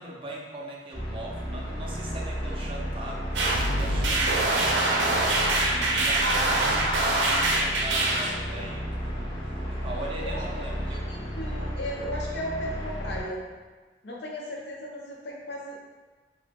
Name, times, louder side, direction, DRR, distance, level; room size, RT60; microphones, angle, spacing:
voice 1, 0.0-9.3 9.7-11.1, right 1 dB, 30° right, -2 dB, 0.4 m, -39 dB
sound 1, 0.9-13.2, equal, 30° left, 0.6 m, -33 dB
sound 2, 3.3-8.3, right 2 dB, 85° right, 0.5 m, -24 dB
voice 2, 10.2-13.4 14.0-15.8, equal, 70° left, -3 dB, 0.6 m, -36 dB
2.8 x 2.0 x 3.5 m, 1.3 s
head